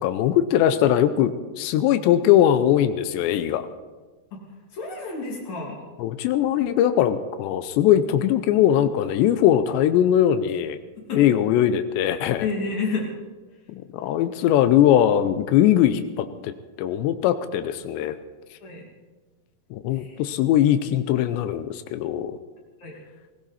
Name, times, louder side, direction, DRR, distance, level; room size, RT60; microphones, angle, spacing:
voice 1, 0.0-3.7 6.0-10.8 11.1-12.5 13.8-16.5 16.8-18.2 19.7-22.4, left 11 dB, 85° left, 11 dB, 3.0 m, -20 dB
voice 2, 4.7-5.8 11.1-11.2 12.4-13.1 18.6-18.8 19.9-20.2 22.8-23.0, left 4 dB, 45° left, -1 dB, 3.7 m, -29 dB
20.0 x 16.0 x 4.2 m, 1.3 s
omnidirectional pair, 5.0 m